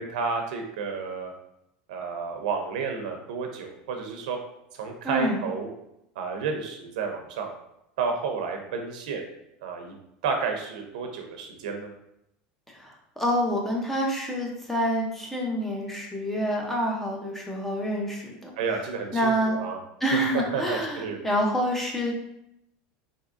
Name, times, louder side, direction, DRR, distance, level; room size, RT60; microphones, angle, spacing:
voice 1, 0.0-1.3 1.9-4.4 4.7-5.7 6.2-7.5 8.0-9.2 9.6-9.9 10.2-11.9 18.6-19.8 20.3-21.2, right 5 dB, 85° right, 3 dB, 0.7 m, -31 dB
voice 2, 5.0-5.5 12.7-18.5 19.1-19.6 20.0-22.1, equal, 5° left, -1 dB, 0.7 m, -27 dB
3.9 x 3.5 x 2.6 m, 0.81 s
supercardioid pair, 150°, 4 cm